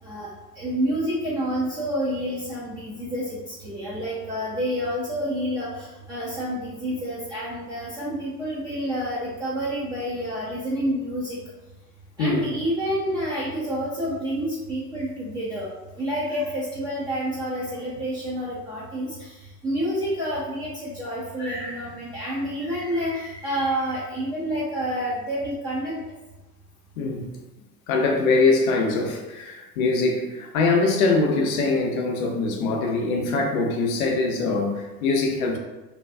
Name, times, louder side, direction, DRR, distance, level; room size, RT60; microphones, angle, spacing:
voice 1, 0.0-11.4 12.2-15.7 16.0-26.0, equal, 10° right, -8 dB, 0.4 m, -28 dB
voice 2, 27.9-35.6, left 3 dB, 65° left, 1 dB, 0.7 m, -23 dB
2.7 x 2.2 x 2.3 m, 1.1 s
figure-of-eight pair, 70°, 46 cm